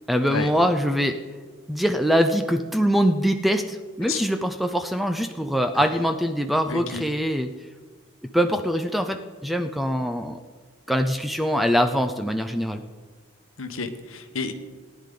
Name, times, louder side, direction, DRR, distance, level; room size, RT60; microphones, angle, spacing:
voice 1, 0.1-1.2 1.7-7.5 8.3-10.4 10.9-12.8, equal, ahead, 7 dB, 0.5 m, -23 dB
voice 2, 6.7-7.1 13.6-14.5, left 4 dB, 70° left, 8 dB, 1.1 m, -30 dB
18.5 x 10.5 x 3.8 m, 1.4 s
head